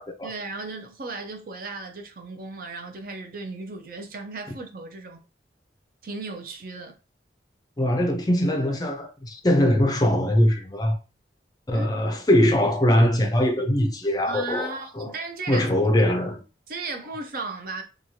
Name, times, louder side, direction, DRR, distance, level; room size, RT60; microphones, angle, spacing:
voice 1, 0.2-5.2 6.0-7.0 11.7-11.9 14.2-15.7 16.1-16.2 16.7-17.8, right 3 dB, 50° right, 0.5 m, -35 dB
voice 2, 7.8-11.0 11.7-15.1 15.5-16.4, left 1 dB, 20° left, 0.4 m, -22 dB
3.0 x 2.3 x 2.7 m
head